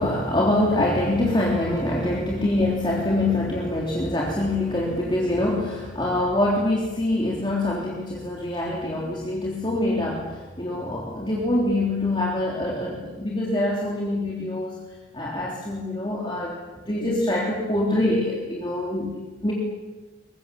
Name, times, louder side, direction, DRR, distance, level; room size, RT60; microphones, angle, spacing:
voice 1, 0.0-10.3 10.6-14.7 15.1-16.6 16.9-19.5, left 1 dB, 25° left, -4 dB, 3.5 m, -24 dB
23.0 x 22.0 x 7.3 m, 1.2 s
head